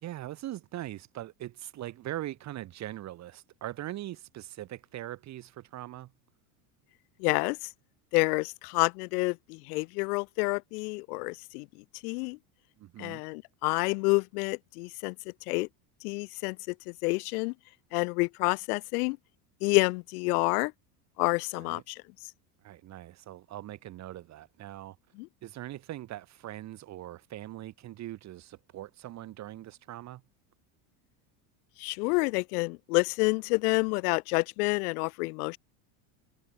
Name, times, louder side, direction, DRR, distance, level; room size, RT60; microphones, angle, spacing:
voice 1, 0.0-6.1 12.8-13.2 21.6-21.8 22.6-25.0 25.4-30.2, right 14 dB, 35° right, 2.9 m, -41 dB
voice 2, 7.2-7.7 8.1-11.7 12.0-12.4 13.0-15.1 15.5-15.7 16.0-17.5 17.9-19.2 19.6-20.7 21.2-22.0 25.2-25.3 31.8-35.6, left 28 dB, 75° left, 1.1 m, -28 dB
cardioid pair, 160°, 45 cm